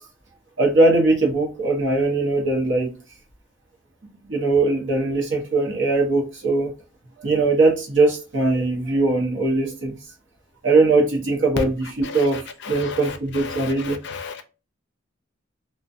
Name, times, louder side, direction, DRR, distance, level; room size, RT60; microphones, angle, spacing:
voice 1, 0.6-2.9 4.3-6.7 7.2-10.0 10.6-14.0, right 2 dB, 65° right, 0.8 m, -20 dB
voice 2, 13.5-14.4, left 5 dB, 60° left, 0.4 m, -34 dB
2.4 x 2.2 x 2.5 m
head